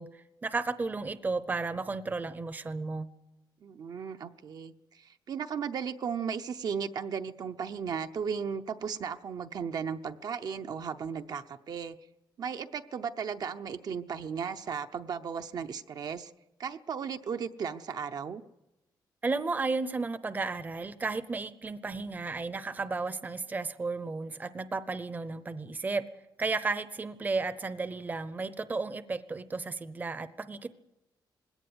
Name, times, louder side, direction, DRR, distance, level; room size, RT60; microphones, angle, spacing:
voice 1, 0.0-3.1 19.2-26.1 26.4-30.7, right 3 dB, 20° right, 14 dB, 0.7 m, -33 dB
voice 2, 3.6-12.0 12.4-16.3 16.6-18.4, right 6 dB, 55° right, 8 dB, 0.8 m, -35 dB
21.0 x 17.0 x 9.7 m, 0.96 s
wide cardioid pair, 170°, 8 cm